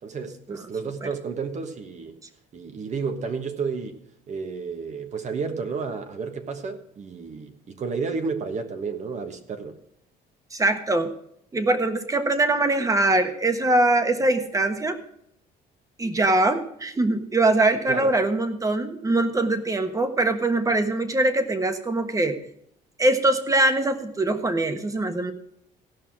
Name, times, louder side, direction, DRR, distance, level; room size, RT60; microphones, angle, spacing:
voice 1, 0.0-2.2 2.5-9.8 17.9-18.2, right 5 dB, 45° right, 1.3 m, -31 dB
voice 2, 10.5-11.1 11.5-15.0 16.0-22.4 23.0-25.3, right 2 dB, 20° right, 1.3 m, -22 dB
16.0 x 5.6 x 6.2 m
cardioid pair, 110°, 17 cm